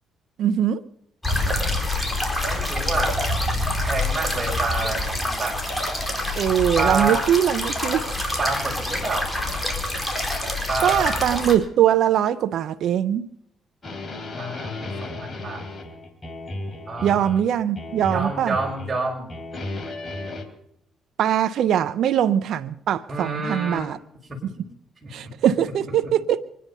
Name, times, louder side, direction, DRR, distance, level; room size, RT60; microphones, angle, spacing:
voice 1, 0.4-0.8 6.4-8.0 10.8-13.3 17.0-18.6 21.2-24.0 24.4-24.5 25.1-26.4, right 10 dB, 70° right, 13 dB, 0.6 m, -21 dB
sound 1, 1.2-11.5, left 1 dB, 10° left, 4.5 m, -26 dB
voice 2, 1.2-1.8 2.5-3.2 3.8-5.6 6.8-7.2 8.4-9.3 10.7-11.3 14.4-15.6 16.9-17.3 18.1-19.3 23.1-23.8 24.6-24.7 25.0-25.1 26.0-26.1, right 3 dB, 30° right, 0 dB, 5.3 m, -28 dB
sound 2, 13.8-17.5 17.8-19.0 19.3-20.4, left 2 dB, 40° left, 3.1 m, -34 dB
24.5 x 10.0 x 5.6 m, 0.76 s
supercardioid pair, 65°, 0 cm